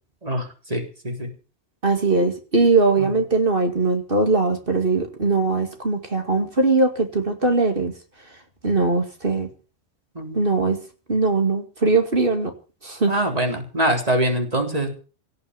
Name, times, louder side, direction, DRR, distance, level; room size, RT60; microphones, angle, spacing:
voice 1, 0.2-1.3 3.0-3.1 10.2-10.4 13.1-14.9, right 1 dB, 35° right, 4.0 m, -24 dB
voice 2, 1.8-7.9 8.6-9.5 10.3-10.8 11.1-12.5 12.8-13.1, right 3 dB, 50° right, 2.5 m, -20 dB
18.0 x 6.6 x 9.7 m
omnidirectional pair, 1.2 m